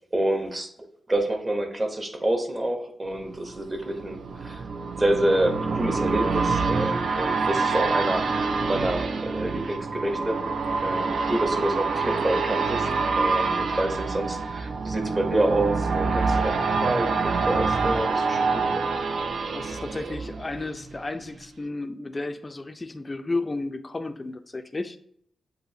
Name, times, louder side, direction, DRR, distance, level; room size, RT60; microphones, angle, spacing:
voice 1, 0.1-0.7 1.1-4.6 5.0-10.4 10.8-18.5 18.7-18.8, right 1 dB, 25° right, 5 dB, 0.8 m, -27 dB
sound 1, 3.2-20.9 21.4-21.5, right 4 dB, 70° right, 0.4 m, -26 dB
voice 2, 19.5-25.0, left 2 dB, 25° left, 7 dB, 0.3 m, -33 dB
7.6 x 2.7 x 2.6 m, 0.67 s
wide cardioid pair, 100°, 0 cm